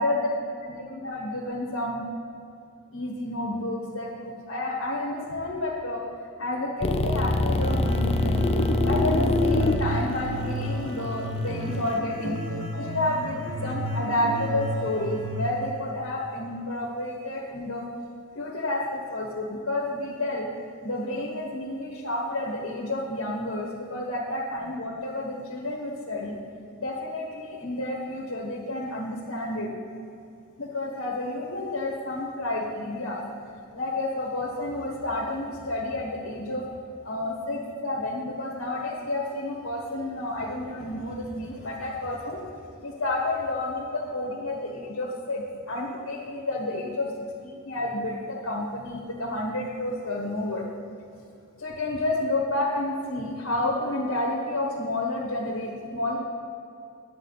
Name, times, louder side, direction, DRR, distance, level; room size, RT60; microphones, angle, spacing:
voice 1, 0.6-2.1 2.9-6.0 6.4-8.4 8.8-12.4 12.7-17.8 18.3-20.5 20.8-26.4 26.8-29.7 30.6-33.2 33.7-36.6 37.0-42.4 42.8-50.7 51.6-56.2, left 1 dB, 80° left, -2 dB, 1.4 m, -30 dB
sound 1, 6.8-11.9, left 2 dB, 30° left, 0.5 m, -24 dB
sound 2, 7.5-15.5, equal, 85° right, 1.4 m, -33 dB
9.7 x 8.7 x 5.6 m, 2.6 s
head